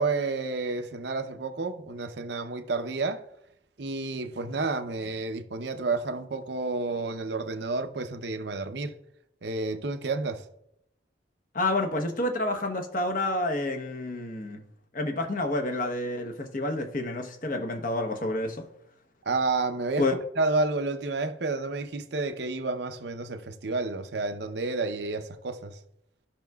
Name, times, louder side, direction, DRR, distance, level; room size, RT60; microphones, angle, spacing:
voice 1, 0.0-3.2 3.8-8.9 9.4-10.5 19.3-20.1 20.4-25.8, right 3 dB, 65° right, 0.7 m, -30 dB
voice 2, 11.5-14.6 14.9-18.7 20.0-20.1, left 2 dB, 45° left, 0.8 m, -29 dB
14.5 x 5.8 x 2.3 m
head